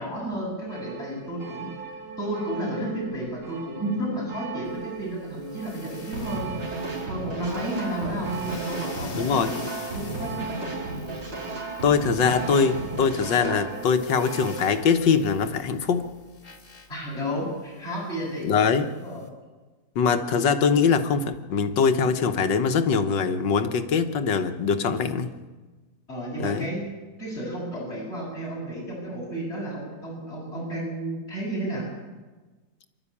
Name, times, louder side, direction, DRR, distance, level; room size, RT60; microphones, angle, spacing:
voice 1, 0.0-6.5 7.1-9.7 9.9-10.5 16.9-18.5 18.9-19.2 26.1-26.8 27.2-31.9, right 1 dB, 35° left, -4 dB, 8.2 m, -32 dB
sound 1, 0.7-15.3, right 7 dB, 45° right, 2.7 m, -40 dB
sound 2, 4.7-19.3, left 5 dB, 65° left, 2.7 m, -47 dB
sound 3, 6.1-13.7, right 2 dB, 80° right, 5.5 m, -34 dB
voice 2, 9.2-9.5 11.8-16.1 18.4-18.9 20.0-25.3 26.4-26.7, left 6 dB, 90° left, 8 dB, 1.9 m, -22 dB
27.0 x 12.0 x 8.6 m, 1.3 s
omnidirectional pair, 1.9 m